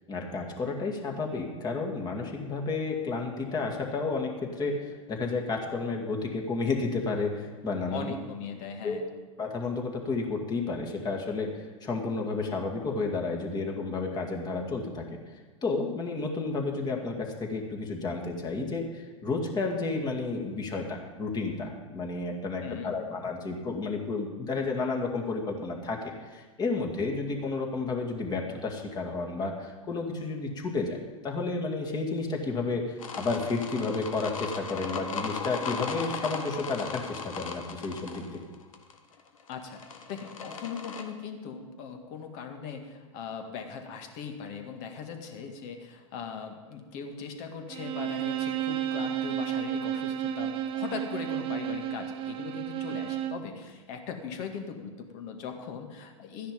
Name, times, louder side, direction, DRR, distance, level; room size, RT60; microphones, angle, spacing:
voice 1, 0.1-8.1 8.8-9.0 9.4-15.1 15.6-31.0 31.2-38.2, left 3 dB, 25° left, 1 dB, 2.2 m, -31 dB
voice 2, 7.9-9.1 22.6-23.0 39.5-56.5, left 6 dB, 50° left, 5 dB, 2.0 m, -39 dB
sound 1, 33.0-41.0, left 5 dB, 80° left, 1.5 m, -37 dB
Bowed string instrument, 47.7-53.5, right 10 dB, 30° right, 0.7 m, -32 dB
13.0 x 10.0 x 5.3 m, 1.4 s
hypercardioid pair, 115°, 17 cm